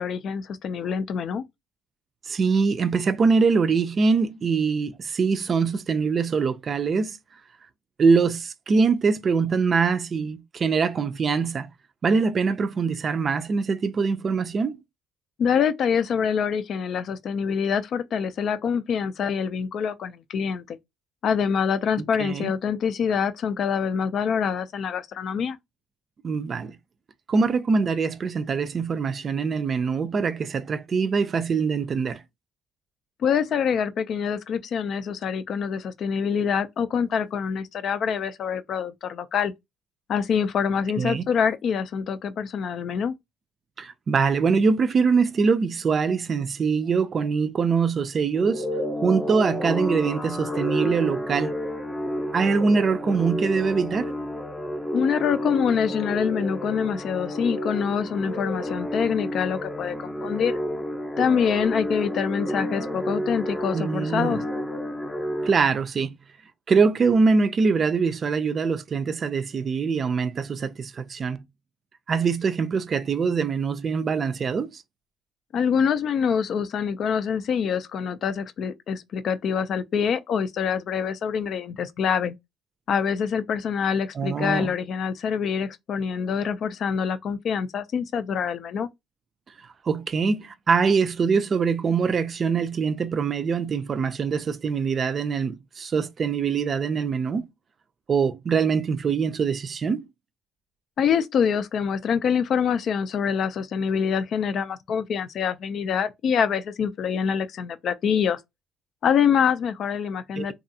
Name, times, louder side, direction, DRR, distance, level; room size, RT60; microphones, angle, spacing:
voice 1, 0.0-1.5 15.4-20.8 21.2-25.6 33.2-39.5 40.1-43.1 54.9-60.6 61.2-64.4 75.5-82.3 82.9-88.9 101.0-108.4 109.0-110.5, left 7 dB, 55° left, 0.4 m, -25 dB
voice 2, 2.3-7.2 8.0-11.7 12.0-14.8 22.0-22.5 26.2-26.7 27.3-32.2 41.0-41.3 43.8-48.7 49.0-51.5 52.3-54.2 63.7-64.4 65.4-66.2 66.7-71.4 72.1-74.8 84.2-84.7 89.8-97.5 98.1-100.1 110.4-110.5, right 5 dB, 45° right, 0.4 m, -23 dB
sound 1, 48.3-65.5, equal, 10° left, 0.5 m, -30 dB
2.7 x 2.3 x 2.6 m
hypercardioid pair, 60°, 0 cm